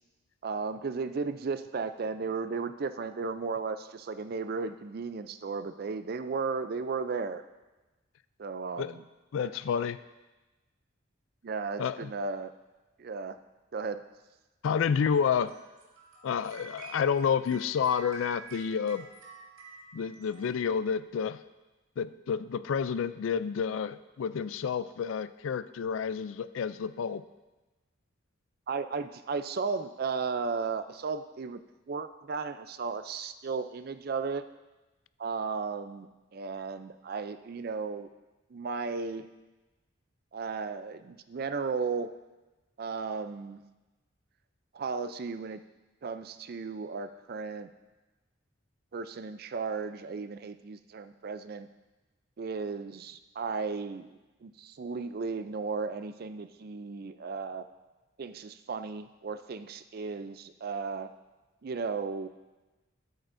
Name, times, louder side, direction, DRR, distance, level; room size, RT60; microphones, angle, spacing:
voice 1, 0.4-7.4 8.4-9.0 9.4-9.5 11.4-12.5 13.0-13.4 13.7-14.0 28.7-31.6 31.9-34.4 35.2-36.1 36.3-38.1 38.5-39.3 40.3-42.1 42.8-43.6 44.7-45.6 46.0-47.7 48.9-51.7 52.4-57.7 58.2-61.1 61.6-62.3, right 4 dB, 50° right, 11 dB, 0.4 m, -35 dB
voice 2, 9.3-10.0 11.8-12.1 14.6-15.5 16.2-19.1 19.9-21.4 22.0-27.2, left 7 dB, 75° left, 14 dB, 0.3 m, -29 dB
sound 1, 15.1-21.0, right 3 dB, 85° right, 1.9 m, -50 dB
13.0 x 8.0 x 2.6 m, 1.1 s
head